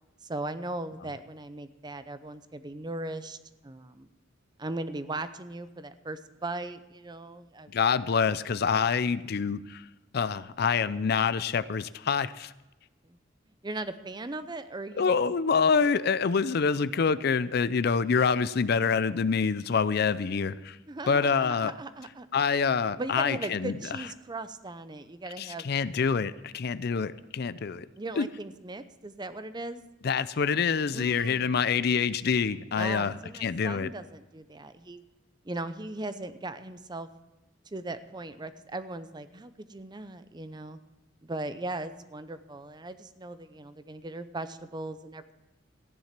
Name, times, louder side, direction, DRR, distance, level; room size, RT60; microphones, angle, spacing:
voice 1, 0.2-3.4 3.6-4.1 4.6-7.7 13.0-13.2 13.6-15.1 20.9-22.3 23.0-25.7 28.0-29.8 30.9-31.5 32.8-35.0 35.4-37.1 37.7-40.8 41.2-45.3, right 2 dB, 25° right, 12 dB, 0.6 m, -38 dB
voice 2, 7.7-9.8 10.1-12.5 15.0-20.8 21.1-21.7 22.3-23.7 25.4-27.9 28.2-28.3 30.0-33.9, left 5 dB, 55° left, 16 dB, 0.5 m, -26 dB
14.5 x 10.5 x 5.9 m, 1.1 s
head